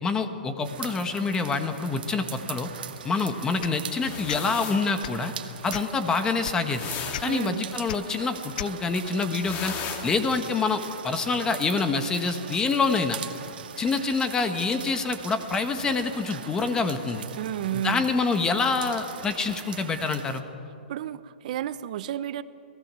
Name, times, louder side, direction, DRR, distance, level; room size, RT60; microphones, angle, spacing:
voice 1, 0.0-2.7 3.0-5.3 5.6-6.9 7.2-9.7 10.0-13.2 13.8-17.2 17.8-20.4, left 4 dB, 15° left, 8 dB, 1.5 m, -26 dB
sound 1, 0.6-20.4, right 8 dB, 70° right, 2.0 m, -41 dB
sound 2, 3.6-3.8 4.3-4.4 5.0-5.2 5.7-6.0 6.4-6.6 7.1-7.2 7.9-8.0 8.6-8.7, left 11 dB, 55° left, 0.6 m, -34 dB
sound 3, 4.0-4.9 6.7-7.5 9.4-10.4, left 7 dB, 30° left, 2.3 m, -36 dB
voice 2, 7.2-7.7 17.4-18.1 20.9-22.4, right 11 dB, 50° right, 14 dB, 1.0 m, -31 dB
29.5 x 19.5 x 7.7 m, 2.6 s
hypercardioid pair, 150°, 5 cm